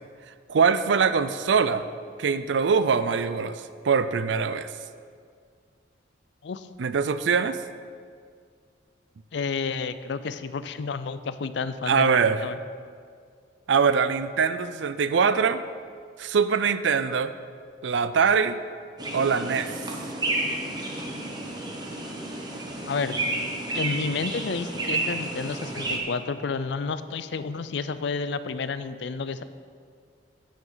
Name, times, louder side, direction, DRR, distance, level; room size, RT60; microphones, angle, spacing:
voice 1, 0.5-1.8 2.2-4.7 6.8-7.6 11.9-12.4 13.7-15.6 16.2-17.3 17.8-18.6 19.1-19.7, right 6 dB, 70° right, 12 dB, 0.4 m, -23 dB
voice 2, 9.3-12.6 22.9-23.2 23.7-29.4, left 4 dB, 65° left, 13 dB, 0.4 m, -30 dB
sound 1, 19.0-26.0, right 2 dB, 20° right, 1.0 m, -31 dB
10.5 x 8.8 x 3.9 m, 2.1 s
head